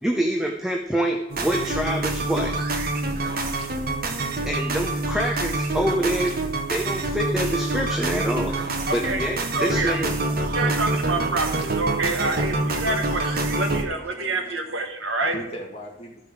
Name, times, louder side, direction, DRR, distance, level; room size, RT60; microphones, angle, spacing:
voice 1, 0.0-2.6 4.5-6.4 6.7-8.6 8.9-10.1, equal, 5° right, 1 dB, 0.6 m, -26 dB
sound 1, 1.3-13.8, right 2 dB, 50° right, 1.0 m, -26 dB
voice 2, 8.9-10.0 10.5-15.3, right 2 dB, 70° right, 5 dB, 1.3 m, -27 dB
voice 3, 12.9-14.8 15.2-16.3, equal, 30° left, -1 dB, 2.1 m, -41 dB
14.0 x 5.2 x 4.7 m, 0.98 s
head